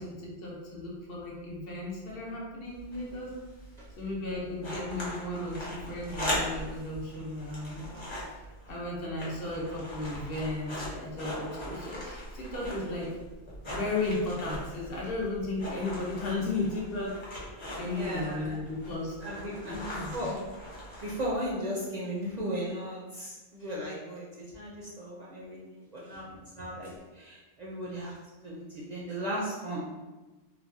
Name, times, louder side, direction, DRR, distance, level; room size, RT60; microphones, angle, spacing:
voice 1, 0.0-3.4 4.0-8.0 8.3-13.1 13.7-17.2 17.7-19.2 19.6-20.3 26.1-26.4, left 2 dB, 65° left, -4 dB, 0.9 m, -35 dB
sound 1, 2.7-21.5, equal, 30° left, 0.7 m, -40 dB
voice 2, 17.9-18.5 19.2-20.4 21.0-24.3 24.5-28.1 28.4-29.8, equal, 50° right, -5 dB, 0.5 m, -36 dB
3.2 x 2.2 x 2.5 m, 1.2 s
omnidirectional pair, 1.1 m